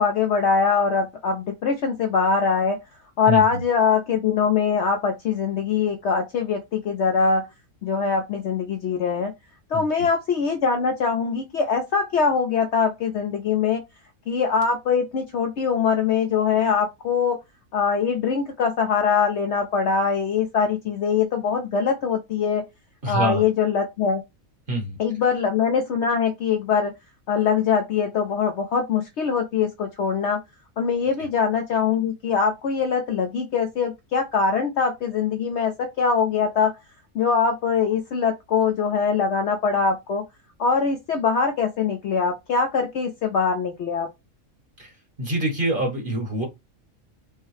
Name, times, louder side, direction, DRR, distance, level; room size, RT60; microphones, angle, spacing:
voice 1, 0.0-2.8 3.2-7.5 7.8-9.3 9.7-13.8 14.3-17.4 17.7-22.6 23.1-24.2 25.0-26.9 27.3-30.4 30.8-36.7 37.1-40.2 40.6-44.1, left 6 dB, 60° left, 0.8 m, -22 dB
voice 2, 3.3-3.6 9.7-10.1 23.0-23.4 24.7-25.0 44.8-44.9 45.2-46.5, equal, 40° right, 1.3 m, -25 dB
5.4 x 2.2 x 3.2 m
omnidirectional pair, 1.5 m